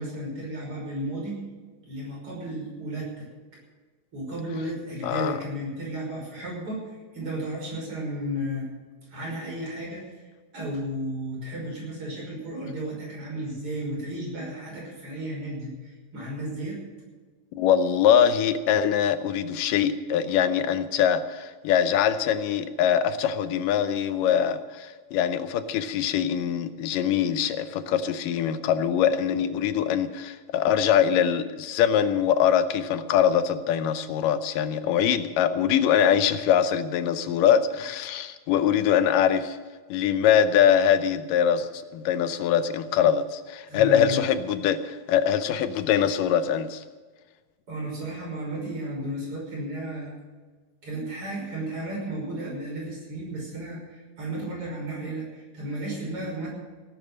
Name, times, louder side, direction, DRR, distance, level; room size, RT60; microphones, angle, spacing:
voice 1, 0.0-1.4 1.8-3.3 4.1-6.8 7.1-8.7 9.1-10.0 10.5-16.8 43.7-44.2 47.7-50.1 50.8-56.5, right 1 dB, 40° right, -2 dB, 6.6 m, -33 dB
voice 2, 5.0-5.4 17.5-39.6 39.9-46.8, left 9 dB, 85° left, 11 dB, 2.4 m, -23 dB
17.5 x 10.5 x 6.4 m, 1.4 s
omnidirectional pair, 3.8 m